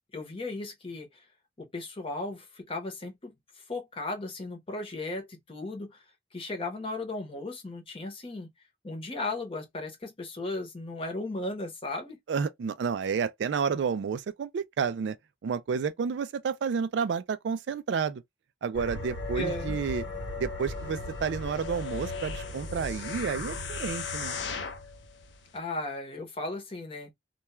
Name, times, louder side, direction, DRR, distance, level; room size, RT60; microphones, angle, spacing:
voice 1, 0.1-1.2 1.6-6.0 6.3-8.5 8.8-12.2 19.3-19.8 25.5-27.1, left 2 dB, 30° left, 0.8 m, -36 dB
voice 2, 12.3-15.2 15.4-18.2 18.6-20.0 20.4-24.4, right 6 dB, 70° right, 0.3 m, -30 dB
sound 1, 18.7-25.4, left 2 dB, 85° left, 1.2 m, -37 dB
sound 2, 21.3-24.9 25.5-25.6, left 6 dB, 65° left, 0.6 m, -38 dB
2.3 x 2.2 x 2.9 m
head